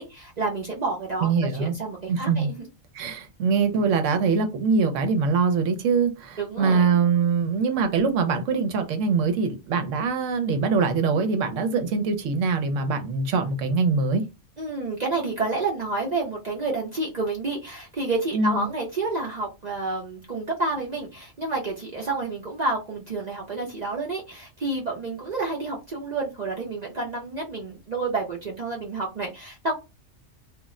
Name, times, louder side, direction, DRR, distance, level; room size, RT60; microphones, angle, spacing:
voice 1, 0.0-2.7 6.4-6.9 14.6-29.7, right 3 dB, 50° right, 0.5 m, -29 dB
voice 2, 1.2-1.8 2.1-2.5 2.9-14.2 18.3-18.7, right 5 dB, 75° right, 0.9 m, -23 dB
2.4 x 2.0 x 3.6 m
omnidirectional pair, 1.3 m